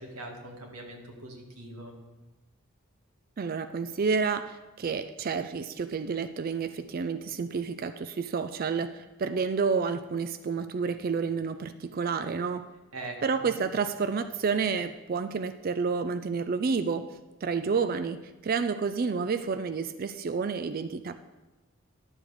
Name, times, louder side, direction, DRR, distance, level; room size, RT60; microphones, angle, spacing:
voice 1, 0.0-1.9 12.9-13.2, right 2 dB, 80° right, 2 dB, 1.8 m, -42 dB
voice 2, 3.4-12.7 13.2-21.2, right 5 dB, 40° right, 10 dB, 0.3 m, -30 dB
11.5 x 7.1 x 4.9 m, 1.1 s
head